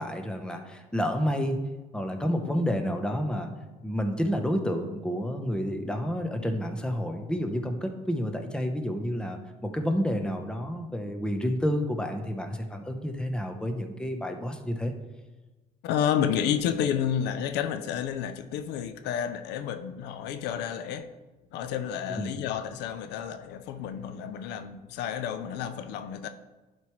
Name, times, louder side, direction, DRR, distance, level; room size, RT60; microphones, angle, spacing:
voice 1, 0.0-1.6 1.9-3.5 3.8-14.9 22.1-22.3, equal, 5° left, 0.8 m, -30 dB
voice 2, 15.8-21.1 21.5-26.3, left 9 dB, 85° left, 0.5 m, -30 dB
11.0 x 4.6 x 3.1 m
cardioid pair, 110°, 17 cm